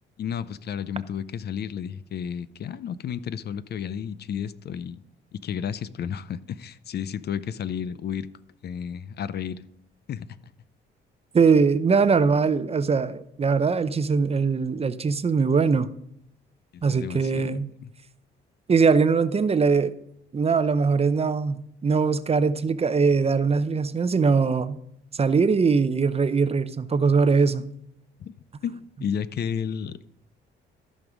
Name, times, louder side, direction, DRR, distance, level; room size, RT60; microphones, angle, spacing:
voice 1, 0.2-5.0 5.3-8.3 8.6-9.6 10.1-10.3 16.7-17.5 17.8-17.9 28.2-28.3 28.6-30.1, left 8 dB, 55° left, 0.6 m, -32 dB
voice 2, 11.3-15.9 16.8-17.7 18.7-19.9 20.3-24.8 25.1-27.7, right 5 dB, 30° right, 0.6 m, -21 dB
14.0 x 5.3 x 6.2 m
cardioid pair, 90°, 20 cm